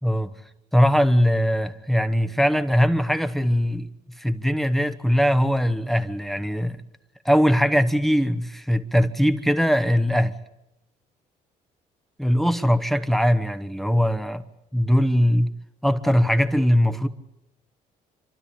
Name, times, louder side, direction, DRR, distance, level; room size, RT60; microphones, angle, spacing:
voice 1, 0.7-3.9 4.2-6.8 7.2-10.4 12.2-14.4 14.7-15.5 15.8-17.1, equal, ahead, 1.1 m, -21 dB
28.0 x 12.5 x 8.7 m
cardioid pair, 115°, 15 cm